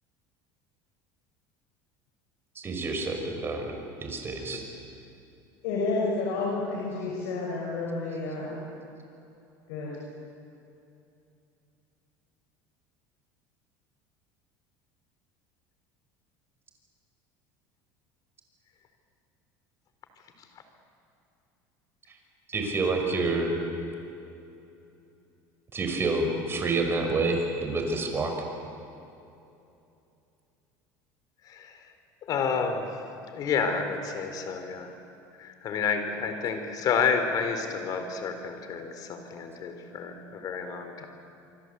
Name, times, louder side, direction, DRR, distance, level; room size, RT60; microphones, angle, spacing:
voice 1, 2.6-3.7 4.0-4.6 22.1-22.2 22.5-23.5 25.7-28.3, right 3 dB, 30° right, 4 dB, 5.6 m, -28 dB
voice 2, 5.6-8.6 9.7-9.9 41.0-41.1, left 3 dB, 80° left, -3 dB, 6.1 m, -30 dB
voice 3, 31.4-31.9 32.2-33.0 33.3-35.0 35.4-41.1, left 6 dB, 50° left, 7 dB, 4.0 m, -30 dB
27.0 x 24.5 x 8.3 m, 2.8 s
supercardioid pair, 115°, 8 cm